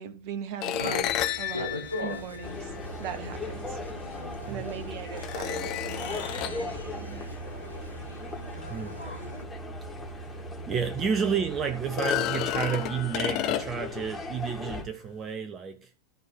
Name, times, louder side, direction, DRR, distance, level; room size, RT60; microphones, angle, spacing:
voice 1, 0.0-1.7 2.0-2.7 3.0-3.8 4.5-7.4, right 7 dB, 45° right, 1.4 m, -39 dB
sound 1, 0.6-3.1 4.3-4.4 5.2-6.7 10.0-10.1 10.5-10.6 11.8-14.0, left 12 dB, 40° left, 1.0 m, -31 dB
sound 2, 0.7-9.4, left 2 dB, 85° right, 1.8 m, -41 dB
sound 3, 2.4-14.8, left 1 dB, 10° left, 3.1 m, -38 dB
voice 2, 10.0-15.9, right 7 dB, 25° right, 0.9 m, -31 dB
13.5 x 4.8 x 5.7 m
figure-of-eight pair, 90°, 0 cm